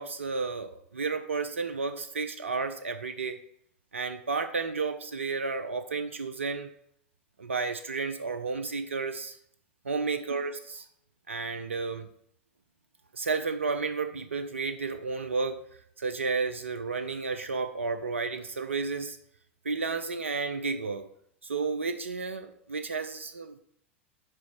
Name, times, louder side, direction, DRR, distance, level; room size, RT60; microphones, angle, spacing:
voice 1, 0.0-3.4 3.9-6.7 7.4-9.4 9.8-10.9 11.3-12.1 13.1-15.6 16.0-19.2 19.6-21.1 21.4-23.6, right 4 dB, 85° right, 9 dB, 0.5 m, -32 dB
5.2 x 4.4 x 6.1 m, 0.68 s
hypercardioid pair, 90°, 7 cm